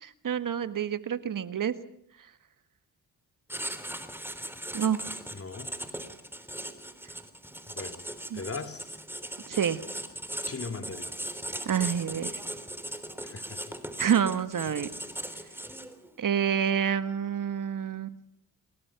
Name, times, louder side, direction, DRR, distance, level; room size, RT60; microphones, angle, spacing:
voice 1, 0.0-1.7 4.7-5.0 8.3-8.4 9.5-9.8 11.6-12.3 14.0-14.9 16.2-18.2, right 8 dB, 65° right, 1.6 m, -28 dB
Writing, 3.5-16.1, right 1 dB, 5° right, 3.6 m, -38 dB
voice 2, 5.3-5.7 7.7-8.0 8.3-8.9 10.5-11.1 13.2-13.8 14.7-14.8, left 4 dB, 40° left, 2.6 m, -39 dB
27.5 x 21.5 x 6.0 m
cardioid pair, 65°, 35 cm